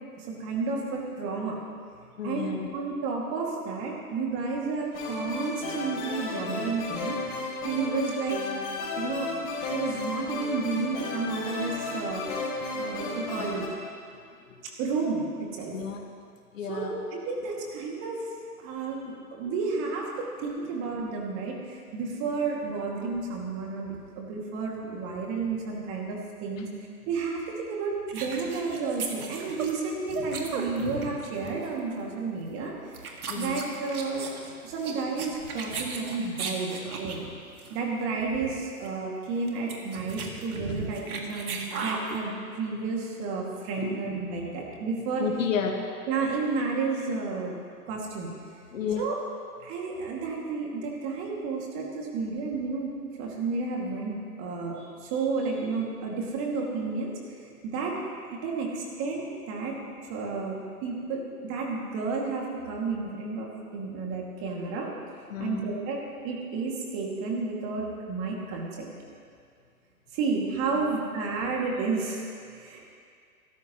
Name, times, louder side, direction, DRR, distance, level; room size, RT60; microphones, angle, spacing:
voice 1, 0.2-1.6 2.2-7.2 7.6-8.4 9.0-9.3 9.6-13.7 14.8-15.7 16.7-18.2 18.6-26.7 27.1-34.3 34.6-37.2 37.7-45.2 46.1-47.6 47.9-48.3 49.0-49.1 49.6-58.0 58.3-59.8 60.1-64.9 65.4-66.0 66.2-68.9 70.1-72.8, right 4 dB, 30° right, -2 dB, 2.6 m, -31 dB
voice 2, 2.2-2.7 13.4-13.5 14.4-14.7 15.7-16.1 16.5-16.9 19.4-19.5 26.6-26.7 33.3-33.6 43.8-44.0 45.2-45.8 48.7-49.1 65.3-65.6 70.7-71.0, left 6 dB, 55° left, 2 dB, 2.0 m, -32 dB
sound 1, 4.9-13.7, left 3 dB, 35° left, 3.6 m, -34 dB
sound 2, 28.1-31.2 31.5-31.7 32.5-32.6 32.9-37.3 37.6-37.8 38.0-38.1 38.3-38.5 38.8-38.9 39.4-42.2, right 4 dB, 70° right, 2.2 m, -36 dB
24.0 x 13.5 x 3.2 m, 2.2 s
figure-of-eight pair, 125°, 46 cm